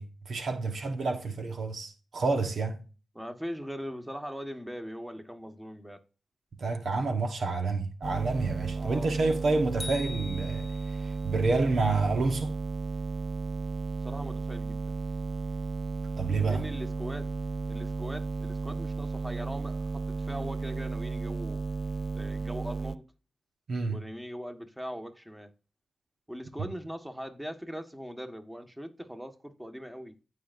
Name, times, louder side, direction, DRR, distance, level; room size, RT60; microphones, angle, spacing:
voice 1, 0.0-2.8 6.6-12.5 16.2-16.6 23.7-24.0, right 3 dB, 70° right, 1.3 m, -29 dB
voice 2, 3.1-6.0 8.8-9.2 14.0-14.8 16.5-17.2 17.7-21.6 22.1-23.0 23.9-25.5 26.3-30.1, equal, 5° right, 1.6 m, -40 dB
sound 1, 8.0-23.0, right 4 dB, 45° right, 0.5 m, -34 dB
sound 2, 9.8-11.2, left 2 dB, 30° left, 0.8 m, -42 dB
15.5 x 5.5 x 2.6 m
cardioid pair, 50°, 0 cm